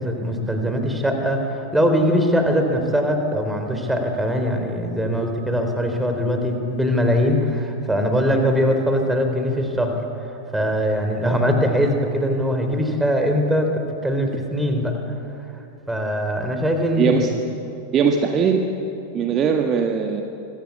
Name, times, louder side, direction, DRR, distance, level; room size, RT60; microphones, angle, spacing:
voice 1, 0.0-10.0 10.5-15.0 15.9-17.3, equal, 5° right, 4 dB, 4.0 m, -21 dB
voice 2, 17.0-17.3 17.9-18.7 19.1-20.2, right 6 dB, 30° right, 4 dB, 1.7 m, -20 dB
25.5 x 23.0 x 8.4 m, 2.8 s
figure-of-eight pair, 90°, 0 cm